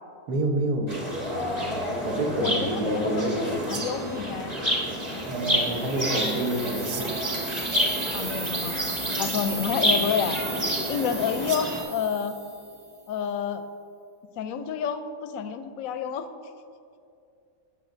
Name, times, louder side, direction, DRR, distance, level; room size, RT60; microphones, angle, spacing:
voice 1, 0.3-0.9 2.0-3.4 5.3-7.1, right 2 dB, 75° right, 1 dB, 1.6 m, -27 dB
sound 1, 0.9-11.8, equal, 20° right, 1.2 m, -29 dB
voice 2, 2.4-4.6 8.1-10.4 10.9-12.4 13.1-13.6 14.4-16.3, left 7 dB, 70° left, 9 dB, 0.9 m, -29 dB
sound 2, 3.6-4.5 6.7-7.4 11.4-11.9, right 5 dB, 55° right, 0.7 m, -39 dB
sound 3, 5.0-12.9, right 3 dB, 40° right, 1.1 m, -36 dB
15.5 x 6.1 x 2.6 m, 2.5 s
omnidirectional pair, 1.7 m